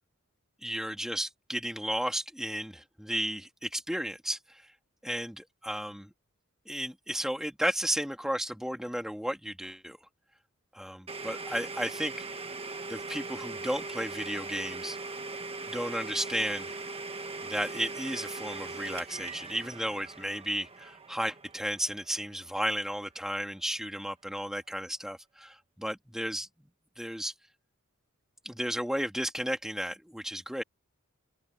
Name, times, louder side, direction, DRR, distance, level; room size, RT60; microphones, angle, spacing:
voice 1, 0.6-4.7 5.0-6.1 6.7-10.0 10.7-12.1 12.9-15.0 15.7-16.8 17.4-26.7 27.0-27.3 28.4-30.6, equal, ahead, 2.7 m, -33 dB
Domestic sounds home sounds, 11.1-22.7, right 3 dB, 30° right, 1.4 m, -40 dB
open air
head